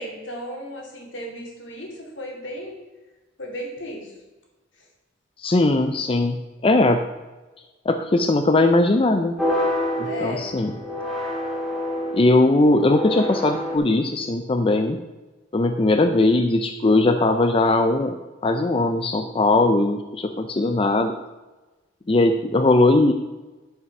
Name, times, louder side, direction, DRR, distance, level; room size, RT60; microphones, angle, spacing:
voice 1, 0.0-2.8 3.4-4.1 10.0-10.5, equal, 70° left, 0 dB, 2.6 m, -34 dB
voice 2, 5.4-7.0 7.9-9.3 10.0-10.7 12.1-15.0 15.5-18.2 18.4-21.1 22.1-23.1, left 2 dB, 30° left, 7 dB, 0.5 m, -19 dB
sound 1, 9.4-13.8, left 1 dB, ahead, 1.8 m, -27 dB
11.0 x 5.6 x 5.9 m, 1.2 s
head